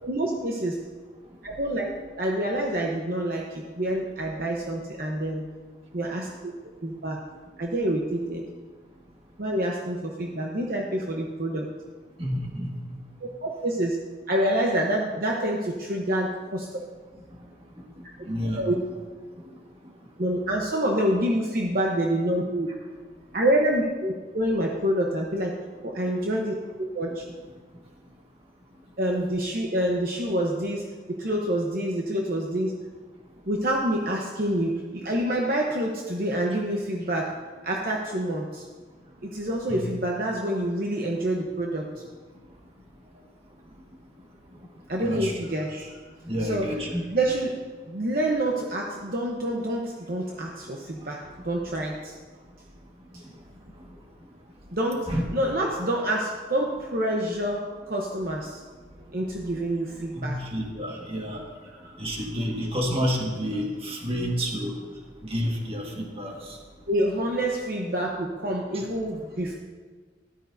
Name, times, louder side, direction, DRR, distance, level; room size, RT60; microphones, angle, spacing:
voice 1, 0.0-0.7 1.4-1.9 2.2-5.4 5.9-6.5 6.8-7.2 7.6-8.4 9.4-11.7 13.2-14.0 14.3-16.7 18.6-18.8 20.2-22.7 23.3-25.6 25.8-27.2 29.0-32.7 33.5-37.4 37.6-38.6 39.2-41.9 44.9-46.0 46.4-46.7 47.1-52.2 53.1-53.2 54.7-58.6 59.1-60.4 60.9-61.0 61.4-62.0 66.9-69.5, right 1 dB, 55° right, -1 dB, 0.9 m, -27 dB
voice 2, 12.2-12.7 17.8-17.9 18.3-18.7 39.7-39.9 45.0-45.3 46.3-47.0 55.1-55.2 60.1-61.4 62.0-64.8 65.3-66.6 68.7-68.8, equal, 35° right, 0 dB, 1.6 m, -29 dB
13.5 x 12.0 x 2.7 m, 1.4 s
head